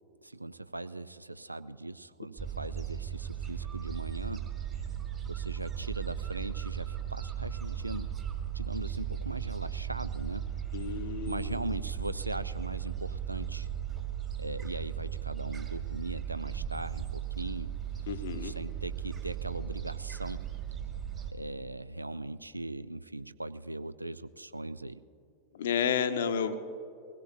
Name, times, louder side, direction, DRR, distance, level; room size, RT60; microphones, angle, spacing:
voice 1, 0.2-4.4 5.3-8.1 8.5-10.5 11.2-13.7 14.4-17.7 18.3-20.5 21.3-25.0, right 2 dB, 85° right, 14 dB, 0.3 m, -39 dB
Gull seagull, 2.4-21.3, right 9 dB, 25° right, 1.8 m, -37 dB
voice 2, 10.7-11.6 18.1-18.6 25.5-26.5, left 7 dB, 60° left, 10 dB, 0.8 m, -31 dB
21.5 x 16.5 x 2.7 m, 2.7 s
figure-of-eight pair, 90°, 0 cm